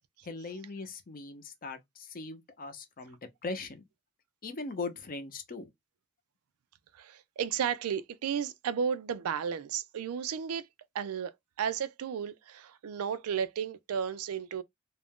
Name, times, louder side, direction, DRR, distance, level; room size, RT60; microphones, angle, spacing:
voice 1, 0.2-3.9 4.4-5.7, left 3 dB, 40° left, 0.6 m, -40 dB
voice 2, 6.9-10.7 10.9-11.3 11.6-14.6, right 7 dB, 80° right, 0.4 m, -33 dB
2.5 x 2.1 x 3.5 m
head